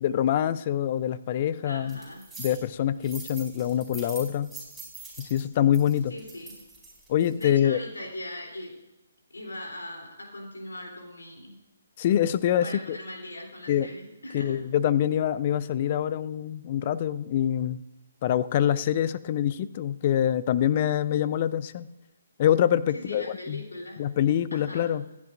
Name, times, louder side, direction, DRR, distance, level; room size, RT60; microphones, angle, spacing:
voice 1, 0.0-2.0 2.4-4.5 5.2-6.1 7.1-7.8 12.0-13.0 13.7-13.9 14.3-17.8 18.2-21.9 22.4-23.6 24.0-25.1, left 10 dB, 35° left, 16 dB, 0.5 m, -25 dB
voice 2, 1.6-2.3 6.1-6.6 7.4-8.7 9.3-11.5 12.6-14.6 22.9-24.0 24.5-24.9, left 1 dB, 65° left, 0 dB, 3.3 m, -40 dB
sound 1, 1.9-2.6 3.0-7.5, right 3 dB, ahead, 4.6 m, -43 dB
26.0 x 10.5 x 2.5 m, 1.0 s
figure-of-eight pair, 135°, 0 cm